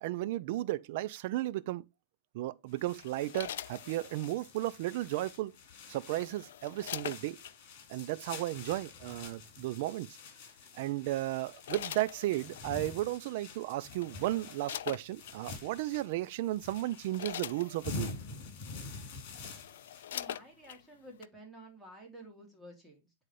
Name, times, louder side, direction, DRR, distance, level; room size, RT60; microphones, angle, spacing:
voice 1, 0.0-1.8 2.3-5.5 5.9-7.4 7.9-10.1 10.7-18.2, right 16 dB, 60° right, 0.5 m, -34 dB
sound 1, 2.7-20.1, left 4 dB, 55° left, 3.5 m, -47 dB
sound 2, 3.0-4.4 5.7-7.6 8.6-8.8 10.5-10.8 11.3-12.7 13.5-13.6 13.9-15.4 16.1-16.3 16.7-18.2 18.9-19.0 19.3-20.8 21.2-21.3, left 11 dB, 80° left, 0.4 m, -43 dB
voice 2, 20.1-23.1, right 1 dB, 5° right, 2.9 m, -52 dB
9.8 x 4.1 x 3.2 m
supercardioid pair, 140°, 0 cm